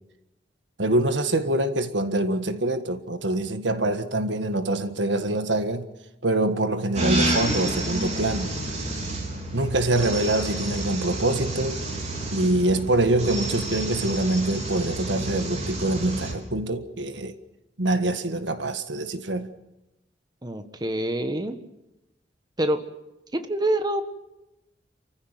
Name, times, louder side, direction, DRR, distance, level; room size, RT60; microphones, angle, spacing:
voice 1, 0.8-5.9 6.2-8.5 9.5-11.8 12.3-17.3 17.8-19.5, right 2 dB, 85° right, 1.7 m, -25 dB
sound 1, 7.0-16.3, right 1 dB, 40° right, 4.4 m, -29 dB
voice 2, 20.4-21.6 22.6-22.8 23.5-24.0, right 1 dB, 25° right, 1.4 m, -26 dB
28.5 x 15.0 x 9.3 m
head